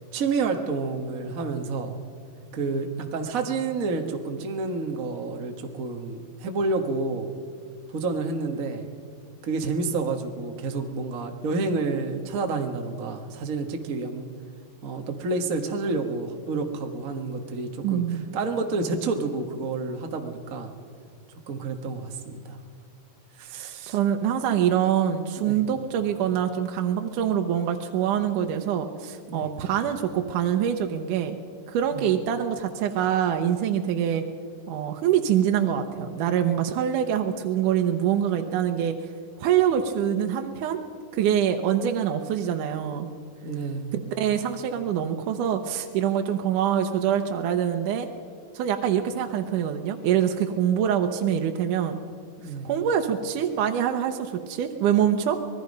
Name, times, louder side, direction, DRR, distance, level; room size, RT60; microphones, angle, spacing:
voice 1, 0.1-2.0 2.5-7.3 7.9-8.9 9.4-14.3 14.8-18.0 18.3-20.7 21.5-22.6 23.4-24.0 25.4-25.6 29.3-29.5 31.9-32.1 43.4-43.9 52.4-52.7, right 3 dB, 55° right, 4 dB, 0.9 m, -29 dB
voice 2, 17.8-18.3 23.6-31.4 31.7-34.2 34.7-39.0 39.4-40.8 41.1-43.1 43.9-48.1 48.5-52.0 52.6-55.4, right 9 dB, 75° right, 4 dB, 2.4 m, -25 dB
25.5 x 19.5 x 5.3 m, 2.1 s
omnidirectional pair, 3.8 m